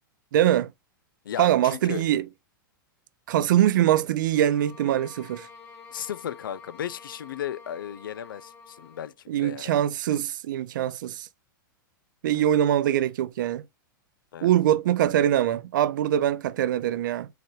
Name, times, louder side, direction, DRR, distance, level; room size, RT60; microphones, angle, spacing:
voice 1, 0.3-0.7 1.4-2.2 3.3-5.5 9.3-11.3 12.2-13.6 14.4-17.3, right 11 dB, 65° right, 0.5 m, -23 dB
voice 2, 1.2-2.1 5.9-9.8 12.3-12.5 14.3-14.5, left 10 dB, 75° left, 0.4 m, -35 dB
sound 1, 4.3-9.2, left 5 dB, 15° left, 1.3 m, -48 dB
4.8 x 3.4 x 3.0 m
hypercardioid pair, 105°, 11 cm